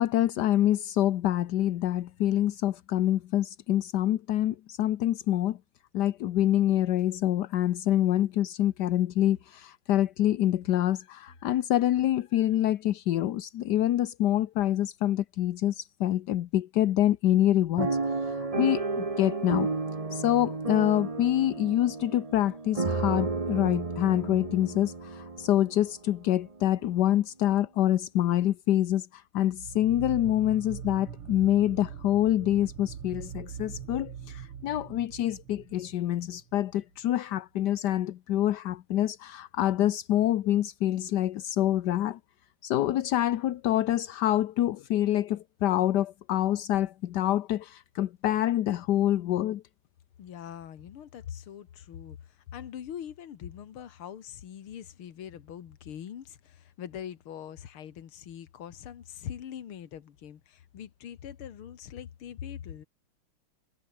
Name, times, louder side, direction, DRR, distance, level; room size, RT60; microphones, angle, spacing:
voice 1, 0.0-5.6 5.9-19.7 20.1-42.2 42.6-49.6, left 12 dB, 65° left, 1.2 m, -26 dB
sound 1, 7.0-7.1 7.9-8.2 8.7-9.0 9.3-9.7 10.0-10.3 10.6-11.7 12.0-12.3, left 2 dB, 40° left, 7.4 m, -61 dB
sound 2, 17.8-25.9 26.5-26.6 26.8-27.1, right 3 dB, 20° right, 1.1 m, -32 dB
sound 3, 29.5-36.8, right 8 dB, 80° right, 2.6 m, -42 dB
voice 2, 50.2-62.9, left 9 dB, 80° left, 2.4 m, -42 dB
omnidirectional pair, 2.4 m